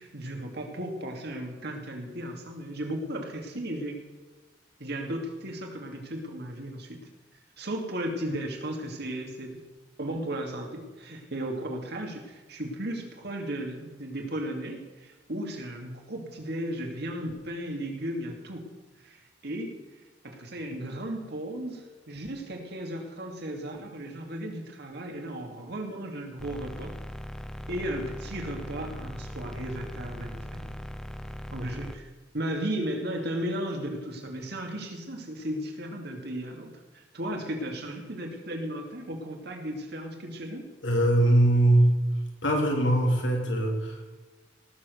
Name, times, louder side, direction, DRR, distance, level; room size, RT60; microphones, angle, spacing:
voice 1, 0.0-4.0 4.8-7.0 7.6-9.6 10.0-18.6 19.0-19.7 20.2-26.9 27.7-30.8 31.5-40.7, right 1 dB, 60° right, 2 dB, 2.6 m, -35 dB
sound 1, 26.4-32.0, equal, 5° left, 0.7 m, -39 dB
voice 2, 40.8-42.0 42.4-44.0, right 1 dB, 80° left, 1 dB, 3.3 m, -22 dB
18.0 x 7.3 x 6.9 m, 1.3 s
head